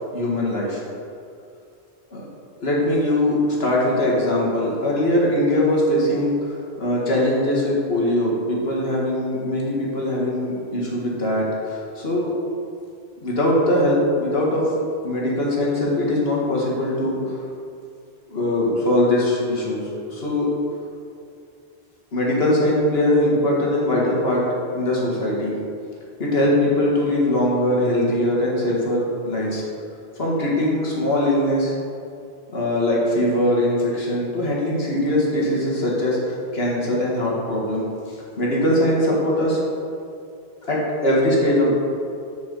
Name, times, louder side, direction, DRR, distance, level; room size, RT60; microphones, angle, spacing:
voice 1, 0.1-0.8 2.1-2.2 2.6-12.3 13.2-14.7 15.0-17.4 18.3-20.5 22.1-24.4 24.7-25.6 26.2-29.7 30.2-31.7 32.5-37.9 38.4-39.6 40.7-41.7, left 1 dB, 80° left, -4 dB, 1.8 m, -21 dB
7.1 x 4.4 x 6.7 m, 2.4 s
omnidirectional pair, 1.0 m